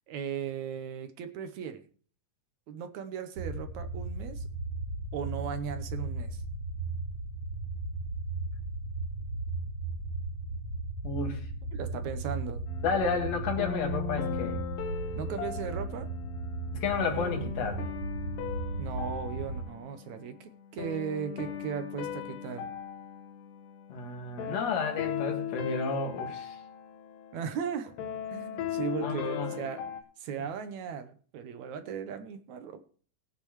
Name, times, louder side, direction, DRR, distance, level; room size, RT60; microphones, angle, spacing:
voice 1, 0.1-1.8 2.7-4.5 5.1-6.4 11.7-12.6 15.2-16.1 18.8-22.7 27.3-27.9 28.3-29.8 30.2-32.8, right 7 dB, 70° right, 8 dB, 2.1 m, -37 dB
sound 1, 3.4-19.6, right 3 dB, 45° right, 1.9 m, -36 dB
voice 2, 11.0-11.5 12.8-14.6 16.7-17.9 23.9-26.6 29.0-29.6, left 4 dB, 55° left, 3 dB, 3.0 m, -31 dB
sound 2, 12.7-30.0, left 9 dB, 85° left, 2.7 m, -39 dB
19.5 x 8.5 x 3.2 m, 0.43 s
omnidirectional pair, 3.7 m